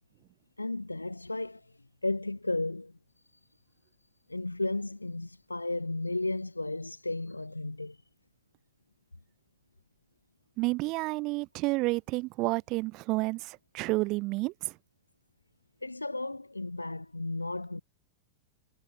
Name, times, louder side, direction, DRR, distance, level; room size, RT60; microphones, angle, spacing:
voice 1, 0.6-3.0 3.3-3.4 4.3-8.0 15.8-17.8, left 2 dB, 85° left, 6.8 m, -34 dB
voice 2, 10.6-14.7, right 22 dB, 40° right, 2.0 m, -30 dB
figure-of-eight pair, 90°, 0 cm